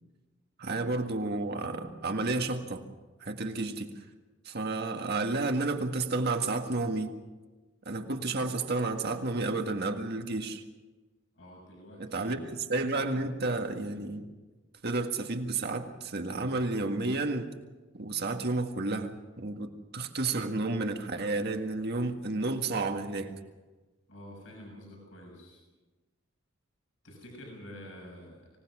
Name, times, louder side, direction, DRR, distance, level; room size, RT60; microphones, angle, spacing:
voice 1, 0.6-2.9 3.2-4.0 4.5-7.2 7.9-10.6 12.0-14.3 14.8-17.5 17.9-23.4, right 3 dB, 55° right, 4 dB, 1.8 m, -31 dB
voice 2, 11.3-12.4 24.1-25.6 27.0-28.5, equal, 70° left, -1 dB, 7.1 m, -48 dB
25.0 x 18.0 x 6.2 m, 1.2 s
head